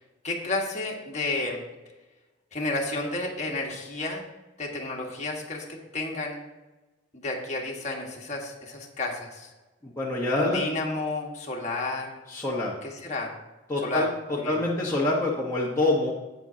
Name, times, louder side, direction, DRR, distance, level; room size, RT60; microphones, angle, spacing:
voice 1, 0.2-1.6 2.5-4.2 4.6-6.4 7.1-9.5 10.3-12.2 12.8-13.3 13.8-14.1 14.3-14.6, left 2 dB, 35° left, -1 dB, 1.5 m, -31 dB
voice 2, 9.8-10.6 12.3-12.7 13.7-14.1 14.5-16.1, left 2 dB, 15° left, -5 dB, 1.1 m, -26 dB
11.0 x 8.7 x 2.8 m, 1.1 s
head